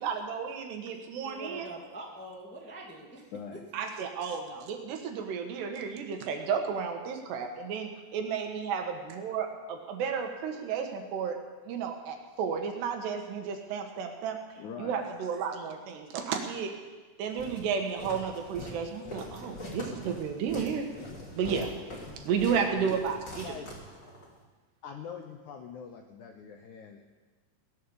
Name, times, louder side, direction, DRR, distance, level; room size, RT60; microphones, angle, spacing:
voice 1, 0.0-1.7 3.7-11.4 11.7-14.4 14.8-16.7 17.2-20.9 21.3-21.7 22.2-23.5, right 6 dB, 75° right, 4 dB, 3.6 m, -32 dB
voice 2, 1.2-3.6, right 1 dB, 10° left, -2 dB, 0.6 m, -44 dB
voice 3, 3.3-3.6 14.6-15.1 22.5-23.0 23.4-23.7 24.8-27.1, left 7 dB, 80° left, 4 dB, 1.7 m, -42 dB
Walk footsteps, 17.4-24.3, left 1 dB, 25° left, 3.3 m, -42 dB
18.0 x 11.0 x 7.1 m, 1.3 s
omnidirectional pair, 4.9 m